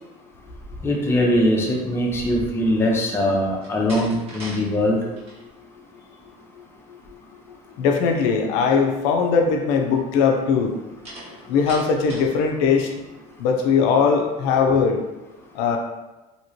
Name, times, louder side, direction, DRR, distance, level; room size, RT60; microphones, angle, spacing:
voice 1, 0.8-5.0, left 1 dB, 15° left, -2 dB, 0.6 m, -21 dB
Slam, 3.5-4.6 5.0-5.4 11.0-12.4, right 1 dB, 35° right, 1.2 m, -39 dB
voice 2, 7.8-10.8 11.5-12.9 13.4-15.0 15.5-15.8, left 5 dB, 75° left, 3 dB, 0.5 m, -20 dB
2.9 x 2.8 x 2.7 m, 1.1 s
cardioid pair, 125°, 18 cm